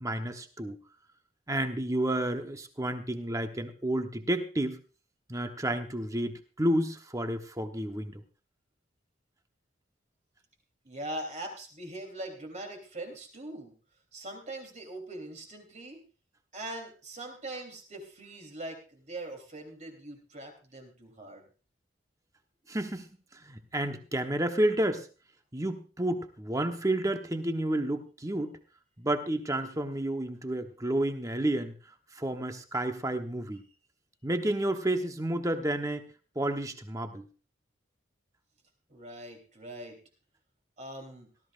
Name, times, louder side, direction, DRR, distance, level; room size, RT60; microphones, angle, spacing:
voice 1, 0.0-0.8 1.5-4.8 5.3-8.2 22.7-23.1 23.3-25.1 25.5-28.5 29.0-31.7 32.1-33.6 34.2-36.0 36.3-37.2, right 1 dB, 20° right, 7 dB, 1.1 m, -30 dB
voice 2, 10.8-13.7 14.1-16.0 16.5-21.5 38.9-40.0 40.8-41.3, right 1 dB, 40° right, 3 dB, 3.3 m, -41 dB
18.0 x 13.5 x 2.5 m, 0.35 s
head